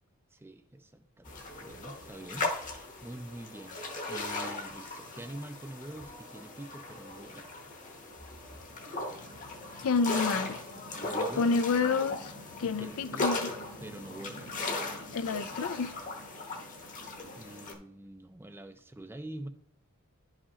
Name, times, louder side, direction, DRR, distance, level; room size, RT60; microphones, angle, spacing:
voice 1, 0.3-7.5 11.0-11.8 12.6-13.3 13.8-14.5 17.4-19.5, right 1 dB, 10° right, 0.4 m, -45 dB
sound 1, 1.2-17.7, left 2 dB, 35° left, 1.0 m, -38 dB
voice 2, 9.8-10.6 11.4-12.3 12.6-13.5 15.1-16.0, left 4 dB, 70° left, 0.4 m, -29 dB
11.0 x 4.9 x 2.8 m
head